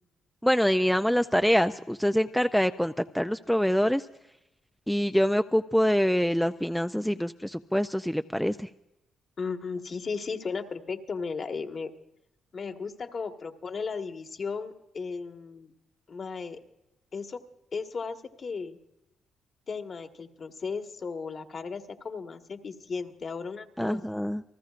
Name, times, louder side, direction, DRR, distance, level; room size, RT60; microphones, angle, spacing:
voice 1, 0.4-4.1 4.9-8.7 23.8-24.4, equal, ahead, 9 dB, 0.5 m, -25 dB
voice 2, 9.4-11.9 12.5-15.7 16.1-16.6 17.1-17.4 17.7-18.8 19.7-24.0, left 5 dB, 45° left, 5 dB, 1.6 m, -35 dB
29.0 x 19.5 x 2.5 m, 0.89 s
cardioid pair, 90°, 0 cm